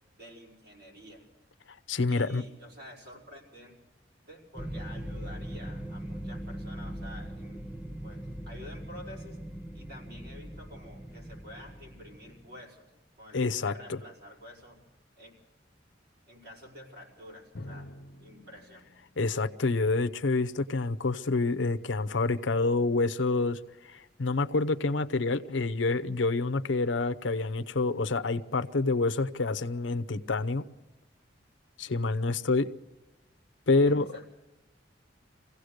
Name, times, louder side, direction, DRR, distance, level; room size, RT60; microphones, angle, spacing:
voice 1, 0.2-1.2 2.1-3.8 4.2-7.6 8.0-9.4 9.7-12.9 13.2-14.9 15.2-15.3 16.3-17.9 18.2-18.8 33.8-34.2, left 1 dB, 60° right, 5.3 m, -49 dB
voice 2, 1.9-2.4 13.3-14.0 19.2-23.6 23.9-30.6 31.8-32.7 33.7-34.1, left 3 dB, 85° left, 0.8 m, -27 dB
sound 1, 4.6-12.5, equal, 10° right, 0.8 m, -40 dB
Drum, 17.5-21.1, left 1 dB, 60° left, 1.1 m, -49 dB
24.5 x 16.5 x 6.6 m
head